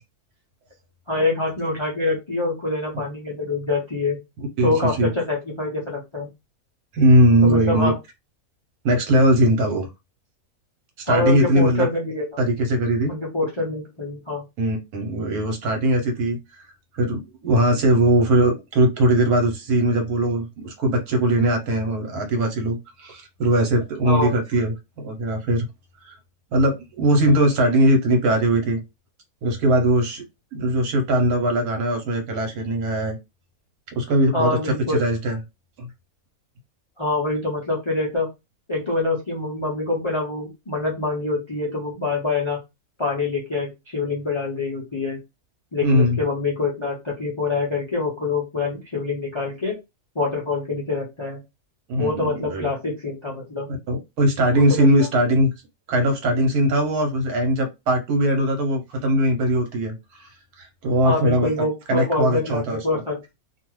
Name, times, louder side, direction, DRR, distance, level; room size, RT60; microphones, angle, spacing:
voice 1, 1.1-4.2 4.6-6.3 7.4-7.9 11.1-12.4 13.1-14.4 24.0-24.3 34.3-35.0 37.0-38.3 38.7-42.6 43.0-45.2 45.7-49.7 50.2-51.4 52.0-53.7 54.5-55.1 61.0-63.2, left 3 dB, 45° left, -2 dB, 0.4 m, -25 dB
voice 2, 4.6-5.1 6.9-7.9 8.8-9.9 11.0-11.9 12.4-13.1 14.6-16.7 16.9-25.7 26.0-26.1 26.5-28.8 29.4-30.2 30.5-33.2 33.9-35.4 35.8-35.9 45.8-46.2 51.9-52.7 53.9-55.5 55.9-60.3 60.6-61.5 61.9-62.8, right 1 dB, 75° right, 4 dB, 1.3 m, -20 dB
2.6 x 2.3 x 3.0 m, 0.23 s
omnidirectional pair, 1.6 m